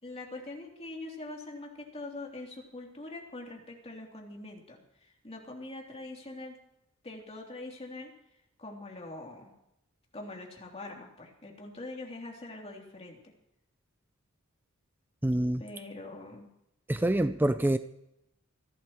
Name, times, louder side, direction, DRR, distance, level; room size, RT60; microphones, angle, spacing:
voice 1, 0.0-6.6 7.0-8.1 8.6-9.5 10.1-13.3 15.6-16.5, left 2 dB, 30° left, -1 dB, 3.2 m, -43 dB
voice 2, 15.2-15.6 16.9-17.8, right 1 dB, 10° right, 11 dB, 0.4 m, -26 dB
29.0 x 11.5 x 3.1 m, 0.83 s
head